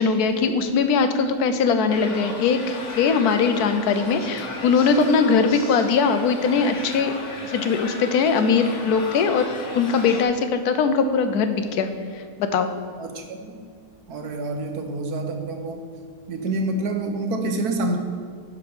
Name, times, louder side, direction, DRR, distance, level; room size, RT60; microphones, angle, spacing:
voice 1, 0.0-7.1 7.4-9.4 9.7-12.2 12.5-12.7, left 5 dB, 90° left, 8 dB, 1.2 m, -21 dB
sound 1, 1.9-10.2, left 2 dB, 55° left, 1.3 m, -35 dB
voice 2, 13.0-13.6 14.1-15.9 16.3-18.0, right 2 dB, 80° right, 5 dB, 1.5 m, -27 dB
11.0 x 4.5 x 5.4 m, 2.1 s
omnidirectional pair, 1.6 m